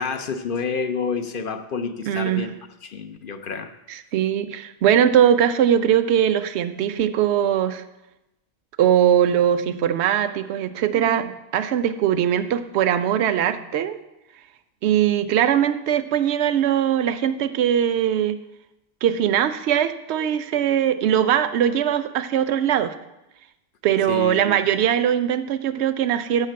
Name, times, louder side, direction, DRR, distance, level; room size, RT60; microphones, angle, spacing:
voice 1, 0.0-2.5 2.8-3.7 24.1-24.4, left 5 dB, 55° left, 8 dB, 0.8 m, -28 dB
voice 2, 2.1-2.4 3.9-7.8 8.8-14.0 14.8-18.4 19.0-22.9 23.8-26.5, right 9 dB, 75° right, 11 dB, 0.9 m, -21 dB
6.6 x 6.4 x 7.4 m, 0.93 s
omnidirectional pair, 1.1 m